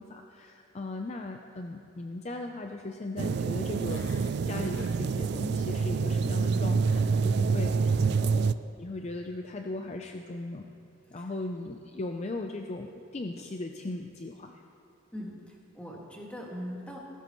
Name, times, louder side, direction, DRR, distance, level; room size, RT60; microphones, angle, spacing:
voice 1, 0.0-4.0 4.4-10.7 11.1-14.6, left 2 dB, 35° left, 4 dB, 0.5 m, -38 dB
sound 1, 3.2-8.5, right 5 dB, 60° right, 0.3 m, -27 dB
Growling, 3.7-5.9 6.2-6.6 7.0-7.1, left 3 dB, 75° left, 0.7 m, -50 dB
voice 2, 15.1-17.0, equal, 5° left, -2 dB, 1.8 m, -41 dB
16.5 x 15.0 x 3.1 m, 2.9 s
head